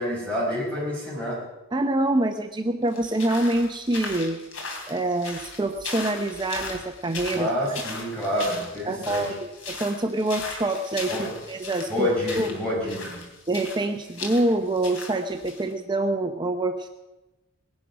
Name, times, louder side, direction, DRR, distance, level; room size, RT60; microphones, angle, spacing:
voice 1, 0.0-1.4 7.3-9.3 11.1-11.4 11.9-13.2, left 1 dB, 5° left, -4 dB, 5.4 m, -28 dB
voice 2, 1.7-4.4 4.9-7.5 8.9-12.1 12.3-12.5 13.5-16.9, right 2 dB, 20° right, 6 dB, 0.7 m, -26 dB
sound 1, 2.9-15.7, left 3 dB, 75° left, 3.4 m, -38 dB
20.0 x 10.5 x 6.1 m, 1.0 s
head